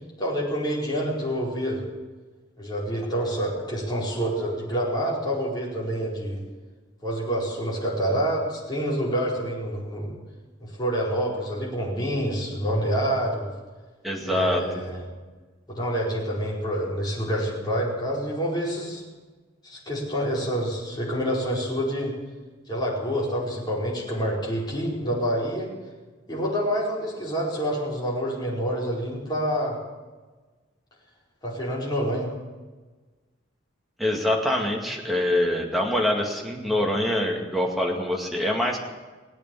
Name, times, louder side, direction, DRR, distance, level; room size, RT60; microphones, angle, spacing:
voice 1, 0.2-1.8 2.6-6.4 7.0-10.1 10.6-13.5 14.2-15.0 15.7-19.0 19.6-22.1 22.7-25.7 26.3-29.8 31.4-32.3, equal, 20° left, -5 dB, 4.9 m, -27 dB
voice 2, 14.0-14.8 34.0-38.8, left 1 dB, ahead, 0 dB, 2.1 m, -25 dB
19.0 x 8.6 x 8.7 m, 1.3 s
head